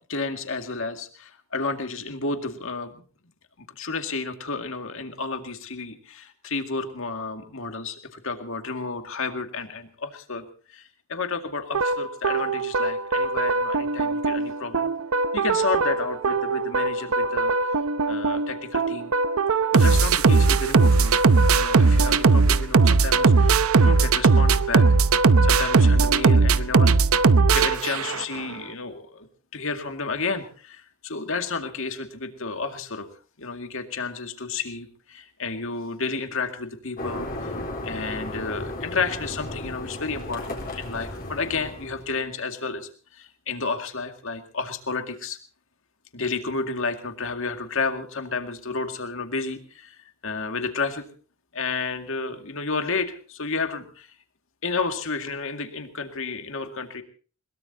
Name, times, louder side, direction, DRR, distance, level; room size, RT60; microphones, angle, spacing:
voice 1, 0.0-2.9 3.8-10.4 10.7-14.9 15.3-17.5 18.1-19.1 19.7-21.1 21.5-24.8 25.4-27.0 27.5-29.3 29.5-33.1 33.4-37.5 37.8-45.4 46.1-50.0 50.2-51.0 51.5-54.1 54.6-57.0, left 4 dB, 70° left, 7 dB, 2.2 m, -31 dB
sound 1, 11.7-28.4, right 4 dB, 85° right, 0.7 m, -19 dB
sound 2, 37.0-42.2, left 1 dB, 45° left, 3.8 m, -34 dB
21.5 x 21.5 x 2.8 m, 0.39 s
head